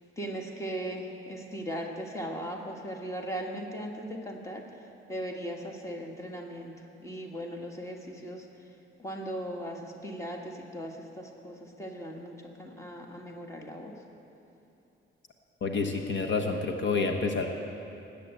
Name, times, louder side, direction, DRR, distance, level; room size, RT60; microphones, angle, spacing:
voice 1, 0.2-4.7 5.1-6.7 7.0-8.5 9.0-14.0, equal, 15° left, 1 dB, 1.6 m, -38 dB
voice 2, 15.6-17.5, left 4 dB, 60° left, 3 dB, 1.2 m, -28 dB
19.5 x 8.6 x 8.0 m, 2.9 s
wide cardioid pair, 145°, 21 cm